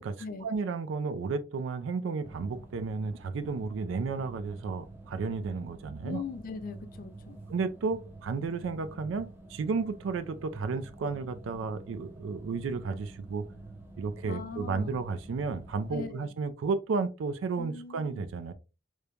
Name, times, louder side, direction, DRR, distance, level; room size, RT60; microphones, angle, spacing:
voice 1, 0.0-6.2 7.5-13.5 14.0-18.5, right 4 dB, 80° right, 0.3 m, -33 dB
sound 1, 2.2-16.1, right 2 dB, 10° right, 0.6 m, -48 dB
voice 2, 6.0-7.4 14.2-15.0 15.9-16.3 17.6-18.2, left 5 dB, 45° left, 0.3 m, -40 dB
3.1 x 2.1 x 2.3 m
head